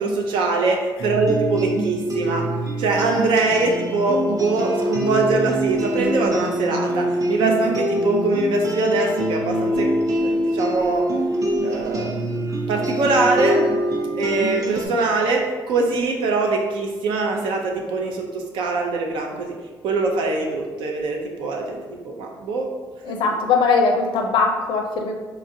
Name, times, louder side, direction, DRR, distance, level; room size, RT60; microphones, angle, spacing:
voice 1, 0.0-2.5 2.8-11.1 11.6-12.4 12.7-13.7 14.2-19.6 19.8-22.7, right 3 dB, 85° right, 2 dB, 0.5 m, -23 dB
sound 1, 1.0-14.9, right 1 dB, 45° right, 0.6 m, -24 dB
voice 2, 23.0-25.2, left 4 dB, 80° left, 3 dB, 0.5 m, -20 dB
4.1 x 2.4 x 2.7 m, 1.3 s
cardioid pair, 95°, 8 cm